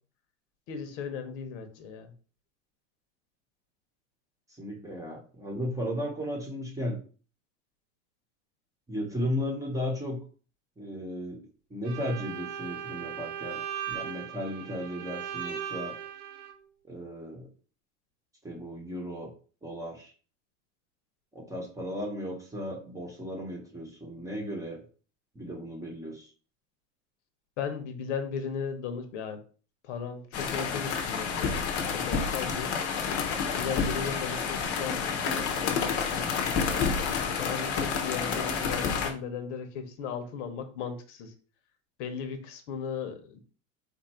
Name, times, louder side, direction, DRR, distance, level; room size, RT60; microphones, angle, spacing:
voice 1, 0.7-2.1 27.6-29.4 29.8-32.7 33.6-41.3 42.0-43.4, left 6 dB, 70° left, 7 dB, 1.1 m, -37 dB
voice 2, 4.6-7.0 8.9-10.2 10.8-11.4 11.7-13.6 13.9-15.9 16.9-17.5 18.4-19.3 19.6-20.1 21.3-24.8 25.3-26.3, equal, 10° right, 0 dB, 1.0 m, -35 dB
Bowed string instrument, 11.8-16.5, right 9 dB, 50° right, 0.9 m, -38 dB
sound 1, 30.3-39.1, left 6 dB, 40° left, 0.9 m, -29 dB
4.3 x 2.6 x 4.3 m, 0.39 s
supercardioid pair, 150°, 37 cm